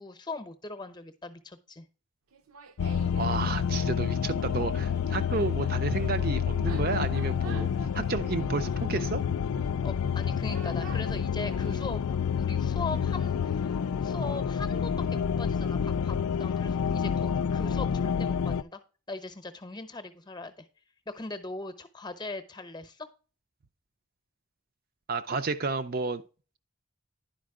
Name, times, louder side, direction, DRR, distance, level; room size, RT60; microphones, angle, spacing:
voice 1, 0.0-1.9 9.8-12.1 12.4-18.8 19.1-20.7 21.1-23.1, left 3 dB, 20° left, 0.8 m, -40 dB
Laughter, 2.3-3.4 4.6-11.9, right 4 dB, 80° right, 0.8 m, -48 dB
sound 1, 2.8-18.6, left 7 dB, 90° left, 0.4 m, -29 dB
voice 2, 3.2-7.7 7.9-9.2 25.1-26.2, right 4 dB, 45° right, 0.5 m, -31 dB
10.5 x 5.1 x 3.6 m
head